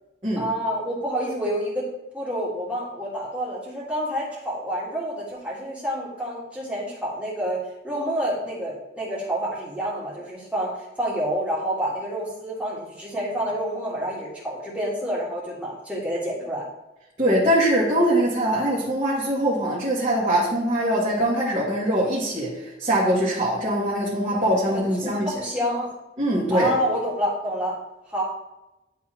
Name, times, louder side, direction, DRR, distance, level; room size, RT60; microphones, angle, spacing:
voice 1, 0.4-1.9 2.1-16.6 24.3-24.4 25.0-25.9 26.5-27.7 28.1-28.2, equal, 5° right, -6 dB, 1.9 m, -28 dB
voice 2, 17.2-25.3 26.2-26.7, right 1 dB, 35° right, -10 dB, 1.8 m, -22 dB
10.5 x 3.7 x 3.1 m, 0.95 s
head